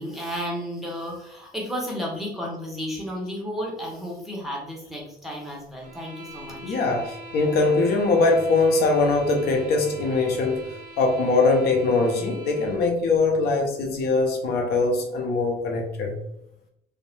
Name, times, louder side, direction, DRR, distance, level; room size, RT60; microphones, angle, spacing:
voice 1, 0.0-6.8, equal, ahead, -2 dB, 0.8 m, -33 dB
sound 1, 5.8-12.9, equal, 50° right, 0.6 m, -43 dB
voice 2, 6.6-10.6 11.0-16.1, left 3 dB, 70° left, 2 dB, 0.6 m, -22 dB
2.6 x 2.0 x 3.1 m, 0.77 s
cardioid pair, 110°, 17 cm